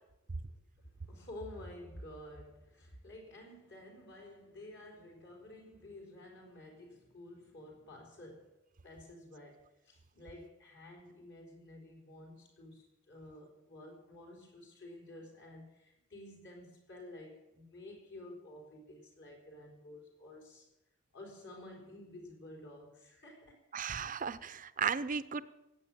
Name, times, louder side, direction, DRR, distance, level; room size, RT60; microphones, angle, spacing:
voice 1, 0.3-20.7 21.1-23.6, left 1 dB, 55° left, 1 dB, 4.0 m, -51 dB
voice 2, 23.7-25.4, right 6 dB, 40° right, 15 dB, 0.6 m, -35 dB
17.5 x 7.8 x 8.9 m, 0.91 s
head